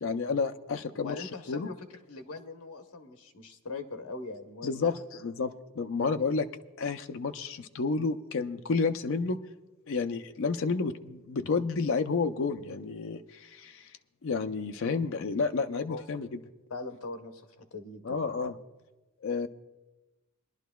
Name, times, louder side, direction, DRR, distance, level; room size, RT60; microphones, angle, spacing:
voice 1, 0.0-1.7 4.6-6.5 6.8-9.4 9.9-13.9 14.2-16.3 18.0-18.6 19.2-19.5, left 4 dB, 60° left, 8 dB, 0.5 m, -30 dB
voice 2, 0.9-5.0 15.7-16.0 16.7-18.2, left 3 dB, 80° left, 5 dB, 1.0 m, -41 dB
23.5 x 11.0 x 2.3 m, 1.1 s
head